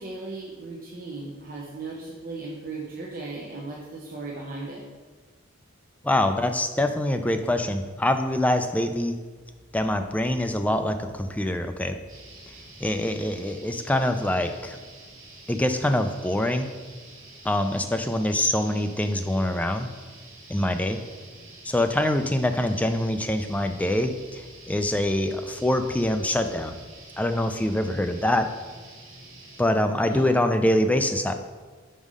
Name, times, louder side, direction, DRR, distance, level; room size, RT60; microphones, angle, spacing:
voice 1, 0.0-4.8 30.0-30.3, right 3 dB, 45° right, -3 dB, 0.7 m, -37 dB
voice 2, 6.0-9.2 9.7-12.0 12.8-14.8 15.5-16.7 17.4-19.9 20.5-21.0 21.7-24.4 24.7-26.7 27.2-28.5 29.6-31.3, left 1 dB, 5° left, 7 dB, 0.3 m, -24 dB
sound 1, 12.1-29.6, right 2 dB, 70° right, 1.7 m, -47 dB
5.5 x 5.2 x 4.8 m, 1.4 s
head